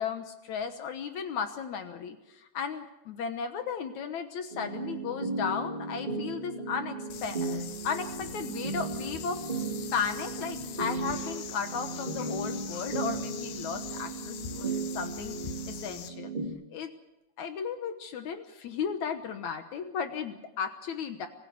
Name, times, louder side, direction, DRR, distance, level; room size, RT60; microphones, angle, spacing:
voice 1, 0.0-9.6 9.9-15.4 15.7-16.3 16.7-16.9 17.4-21.3, left 6 dB, 65° left, 8 dB, 2.1 m, -35 dB
sound 1, 4.5-16.5, right 4 dB, 15° right, 2.0 m, -36 dB
sound 2, 7.1-16.1, left 9 dB, 90° left, 3.3 m, -43 dB
25.5 x 15.5 x 8.1 m, 0.93 s
omnidirectional pair, 4.3 m